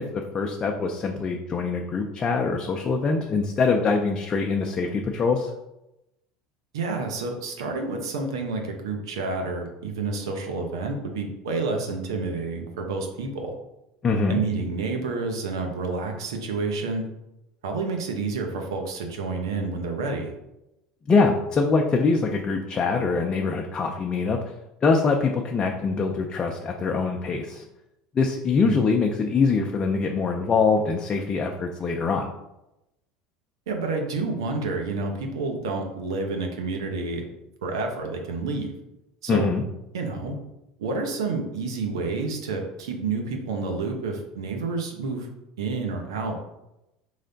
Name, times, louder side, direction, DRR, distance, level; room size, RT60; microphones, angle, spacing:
voice 1, 0.0-5.5 14.0-14.4 21.1-24.4 24.8-27.6 28.1-32.3 39.3-39.6, left 4 dB, 30° left, 2 dB, 0.5 m, -23 dB
voice 2, 6.7-13.5 14.3-17.0 17.6-20.3 28.6-28.8 33.7-37.2 37.6-38.7 39.2-39.5 39.9-40.4 40.8-45.3 45.6-46.5, right 3 dB, 90° right, 3 dB, 0.9 m, -29 dB
4.1 x 3.2 x 3.9 m, 0.91 s
supercardioid pair, 95°, 2 cm